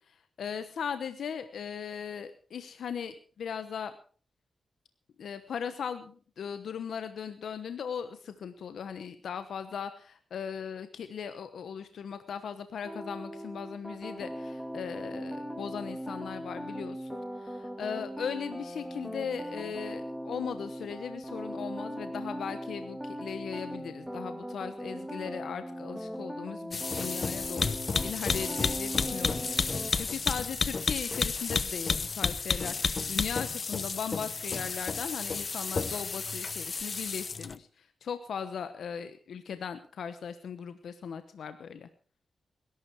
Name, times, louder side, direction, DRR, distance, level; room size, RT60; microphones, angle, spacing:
voice 1, 0.1-3.9 5.2-29.4 29.7-41.9, left 7 dB, 85° left, 10 dB, 1.0 m, -38 dB
sound 1, 12.8-29.9, equal, ahead, 2.6 m, -39 dB
sound 2, 26.7-37.6, left 4 dB, 50° left, 0.9 m, -31 dB
20.5 x 12.0 x 4.7 m, 0.42 s
cardioid pair, 65°, 0 cm